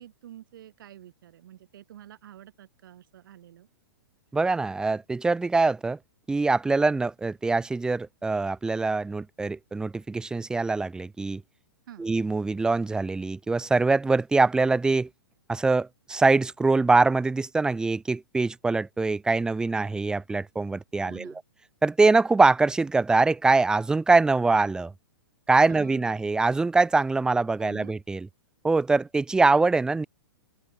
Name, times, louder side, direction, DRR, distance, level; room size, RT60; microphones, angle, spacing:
voice 1, 0.0-3.7 11.9-12.1 21.0-21.4 25.7-26.2 27.6-27.9, right 11 dB, 65° right, 5.1 m, -48 dB
voice 2, 4.3-6.0 6.3-11.4 12.0-15.1 15.5-21.3 21.8-24.9 25.5-28.3 28.6-30.1, right 3 dB, 5° right, 0.5 m, -23 dB
open air
hypercardioid pair, 120°, 12 cm